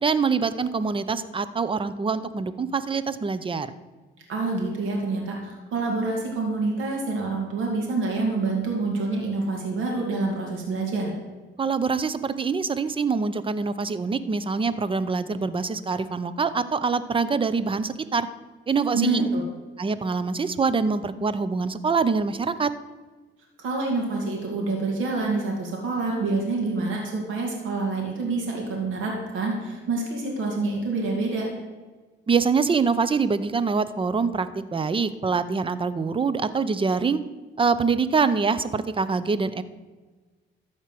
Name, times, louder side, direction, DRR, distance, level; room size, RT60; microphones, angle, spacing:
voice 1, 0.0-3.7 11.6-18.3 18.7-19.3 19.8-22.7 32.3-37.2 37.6-39.6, right 5 dB, 25° right, 14 dB, 0.7 m, -25 dB
voice 2, 4.3-11.1 18.9-19.4 23.6-31.5, right 3 dB, 85° right, -1 dB, 2.6 m, -27 dB
13.0 x 4.5 x 7.6 m, 1.3 s
cardioid pair, 90°, 20 cm